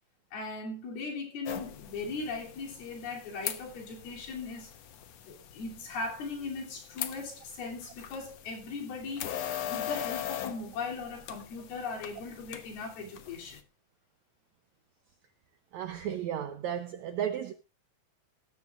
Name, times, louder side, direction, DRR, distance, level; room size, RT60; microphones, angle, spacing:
voice 1, 0.3-4.7 5.3-9.4 9.6-13.6, left 4 dB, 90° left, 4.9 m, -38 dB
sound 1, 1.4-13.6, left 11 dB, 70° left, 1.6 m, -41 dB
voice 2, 15.7-17.5, right 9 dB, 80° right, 1.6 m, -34 dB
17.0 x 14.5 x 2.4 m
omnidirectional pair, 4.2 m